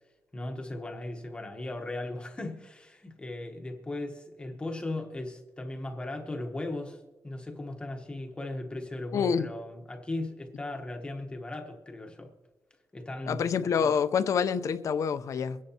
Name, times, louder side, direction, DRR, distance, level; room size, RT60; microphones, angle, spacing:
voice 1, 0.3-12.3 12.9-13.4, left 2 dB, 15° left, 1.0 m, -37 dB
voice 2, 9.1-9.5 13.3-15.6, left 6 dB, 55° left, 0.5 m, -27 dB
23.5 x 10.5 x 2.8 m
wide cardioid pair, 170°, 7 cm